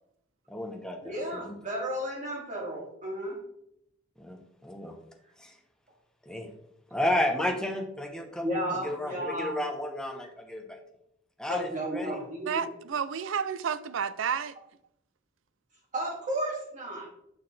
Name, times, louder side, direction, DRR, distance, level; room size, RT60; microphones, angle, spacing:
voice 1, 0.5-1.6 4.2-4.9 5.4-5.5 6.3-6.5 6.9-10.8 11.4-12.2, left 1 dB, 5° left, 0.8 m, -32 dB
voice 2, 1.0-3.4 8.4-9.5 11.5-12.6 15.9-17.1, right 1 dB, 40° right, 2.6 m, -33 dB
voice 3, 12.5-14.5, right 7 dB, 75° right, 0.4 m, -31 dB
6.4 x 6.1 x 3.3 m
head